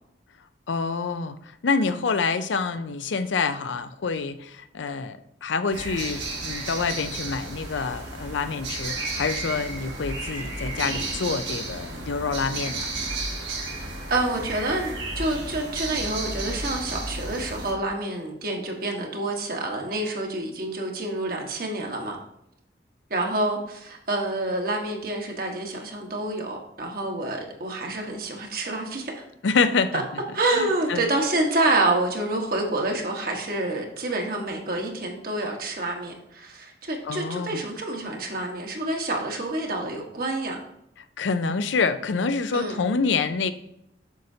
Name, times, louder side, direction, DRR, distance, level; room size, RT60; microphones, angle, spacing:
voice 1, 0.7-1.4 1.6-12.9 29.4-30.0 30.5-31.0 37.0-37.6 41.2-43.5, left 4 dB, 90° left, 11 dB, 0.5 m, -27 dB
sound 1, 5.7-17.7, right 2 dB, 80° right, 2.0 m, -33 dB
voice 2, 14.1-22.2 23.1-29.3 29.9-30.0 30.3-40.6 42.5-42.8, right 2 dB, 50° right, 1 dB, 1.3 m, -28 dB
8.2 x 6.4 x 2.8 m, 0.80 s
head